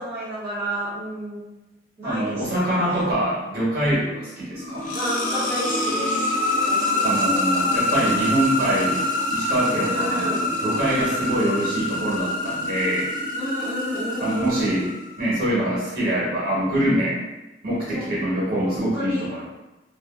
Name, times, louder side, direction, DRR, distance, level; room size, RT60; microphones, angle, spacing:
voice 1, 0.0-1.5 2.0-3.1 4.9-6.3 6.7-7.1 9.8-10.5 13.4-14.8 17.8-18.2 18.6-19.3, equal, 15° right, -11 dB, 0.5 m, -31 dB
voice 2, 2.0-4.9 7.0-13.1 14.2-14.9 15.2-17.2 17.6-19.5, right 1 dB, 50° right, -6 dB, 1.0 m, -24 dB
sound 1, 4.5-15.3, left 1 dB, 45° left, 0.4 m, -25 dB
2.5 x 2.3 x 2.2 m, 1.0 s
head